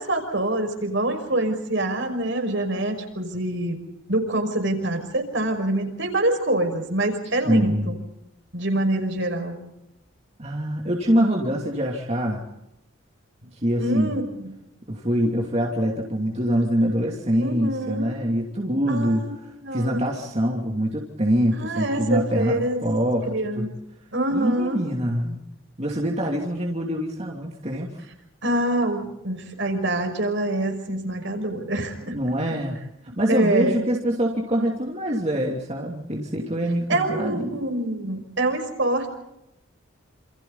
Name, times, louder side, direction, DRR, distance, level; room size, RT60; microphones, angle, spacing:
voice 1, 0.0-3.8 4.1-8.0 8.5-9.6 13.8-14.5 17.4-18.1 18.9-19.3 19.6-20.1 21.5-22.8 23.3-23.7 24.1-24.8 28.4-32.2 33.1-33.8 36.9-39.1, right 1 dB, 65° right, 5 dB, 5.7 m, -25 dB
voice 2, 7.4-7.9 10.4-12.4 13.5-14.2 14.9-19.2 19.7-23.3 23.5-23.7 24.3-25.4 25.8-28.0 32.1-32.8 33.2-37.6, equal, 30° right, 0 dB, 2.9 m, -24 dB
29.0 x 28.0 x 4.1 m, 0.86 s
head